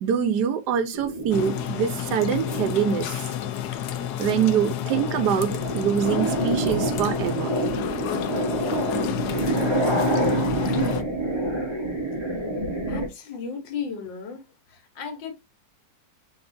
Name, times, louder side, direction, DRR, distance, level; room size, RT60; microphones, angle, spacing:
voice 1, 0.0-3.1 4.2-7.5, right 8 dB, 70° right, 1.2 m, -24 dB
sound 1, 0.9-2.9 3.5-3.9 4.3-13.1, right 1 dB, 25° right, 0.7 m, -27 dB
sound 2, 1.3-11.0, left 10 dB, 70° left, 1.1 m, -30 dB
voice 2, 12.9-14.5 14.7-15.3, left 6 dB, 85° left, 1.8 m, -34 dB
5.9 x 3.4 x 2.6 m
omnidirectional pair, 2.0 m